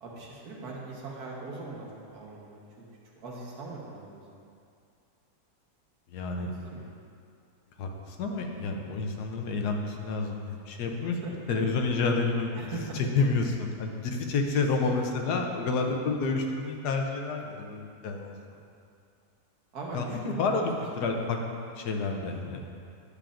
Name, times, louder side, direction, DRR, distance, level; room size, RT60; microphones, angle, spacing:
voice 1, 0.0-2.9 3.2-4.4 6.4-6.9 11.2-11.3 12.5-13.0 14.8-15.0 19.7-20.7, right 3 dB, 70° right, -3 dB, 1.7 m, -41 dB
voice 2, 6.1-6.5 7.8-11.2 11.5-18.4 19.9-20.6 21.0-21.4 21.8-22.6, left 4 dB, 80° left, 3 dB, 1.3 m, -29 dB
10.0 x 7.2 x 2.5 m, 2.4 s
omnidirectional pair, 1.7 m